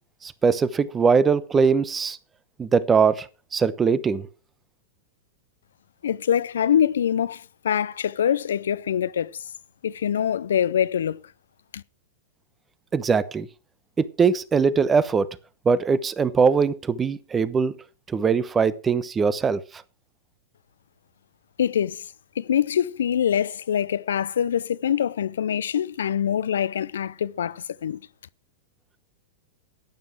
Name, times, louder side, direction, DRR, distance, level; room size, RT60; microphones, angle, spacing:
voice 1, 0.2-2.2 2.6-3.3 3.5-4.3 12.9-13.5 14.0-15.3 15.6-17.7 18.1-19.8, right 5 dB, 20° right, 1.0 m, -21 dB
voice 2, 6.0-9.5 9.8-11.2 11.7-11.8 21.6-22.1 22.4-28.0, left 9 dB, 80° left, 0.5 m, -24 dB
12.0 x 9.5 x 4.7 m
hypercardioid pair, 105°, 0 cm